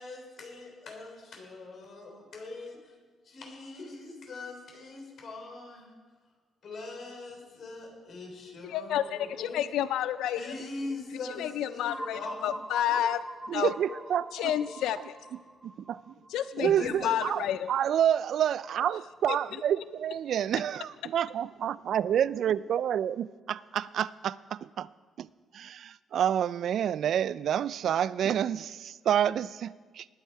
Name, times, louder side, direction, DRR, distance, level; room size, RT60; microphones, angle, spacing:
voice 1, 0.0-2.9 3.2-5.9 6.6-9.6 10.3-12.5 16.6-17.1, left 3 dB, 55° left, 1 dB, 3.6 m, -41 dB
voice 2, 8.6-10.4 11.4-13.2 13.5-13.7 14.3-15.2 16.3-17.7, left 11 dB, 85° left, 14 dB, 0.3 m, -30 dB
sound 1, 11.9-17.5, right 1 dB, 5° right, 0.5 m, -44 dB
voice 3, 13.5-14.5 15.6-16.2 16.6-24.9 25.2-30.1, right 9 dB, 65° right, 19 dB, 0.3 m, -29 dB
19.5 x 8.3 x 4.6 m, 1.5 s
cardioid pair, 110°, 0 cm